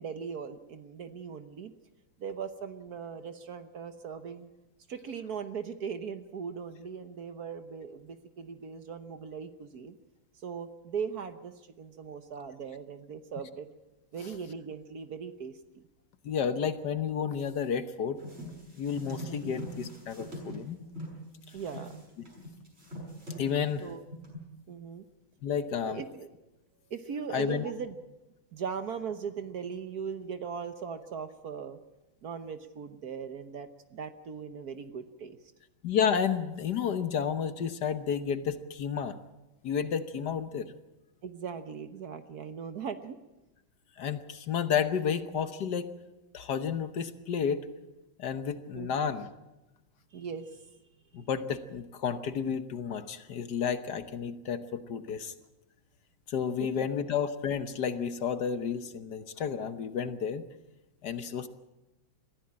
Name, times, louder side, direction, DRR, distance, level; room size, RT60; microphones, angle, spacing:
voice 1, 0.0-1.7 2.2-4.5 4.9-10.0 10.4-13.7 14.1-15.8 19.3-19.6 21.5-22.0 23.8-24.0 24.7-25.0 25.8-26.3 26.9-27.9 28.5-31.8 32.2-35.4 41.2-43.2 48.7-49.1 50.1-50.7 56.6-56.9, right 6 dB, 55° right, 10 dB, 1.3 m, -39 dB
voice 2, 16.2-18.2 18.8-20.8 23.4-23.9 25.4-26.0 27.3-27.6 35.8-39.2 39.6-40.7 44.0-46.0 46.3-47.6 48.2-49.3 51.1-55.3 56.3-60.4 61.0-61.5, left 7 dB, 60° left, 11 dB, 1.5 m, -31 dB
sound 1, 18.2-21.1 21.5-23.8 24.1-24.5, equal, 30° right, 6.3 m, -42 dB
22.5 x 15.0 x 8.7 m, 0.99 s
omnidirectional pair, 2.2 m